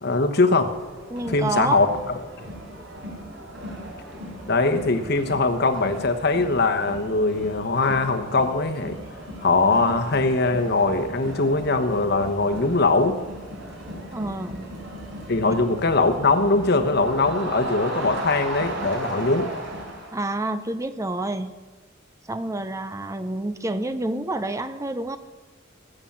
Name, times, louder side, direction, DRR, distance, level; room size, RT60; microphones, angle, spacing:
voice 1, 0.0-0.7 1.3-1.9 4.5-9.0 9.4-13.2 15.3-19.5, left 3 dB, 55° left, 7 dB, 1.1 m, -21 dB
Crowd, 0.7-20.1, right 1 dB, 65° right, 4.5 m, -36 dB
voice 2, 1.1-1.8 14.1-14.7 20.1-21.5 22.3-25.2, right 2 dB, 15° right, 11 dB, 0.6 m, -28 dB
19.5 x 8.1 x 7.3 m, 1.3 s
head